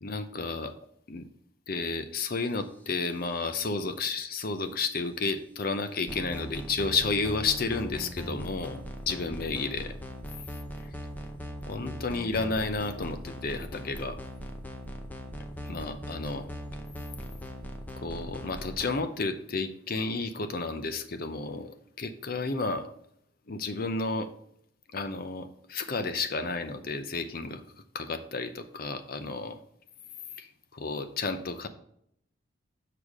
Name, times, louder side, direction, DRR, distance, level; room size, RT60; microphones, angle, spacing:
voice 1, 0.0-0.8 1.1-1.3 1.7-9.9 11.7-14.2 15.6-16.5 18.0-22.9 23.5-24.3 24.9-27.6 27.9-29.6 30.4-31.7, left 3 dB, 45° left, 10 dB, 0.6 m, -32 dB
sound 1, 6.1-18.9, equal, 10° left, 0.6 m, -40 dB
6.8 x 6.4 x 3.6 m, 0.71 s
head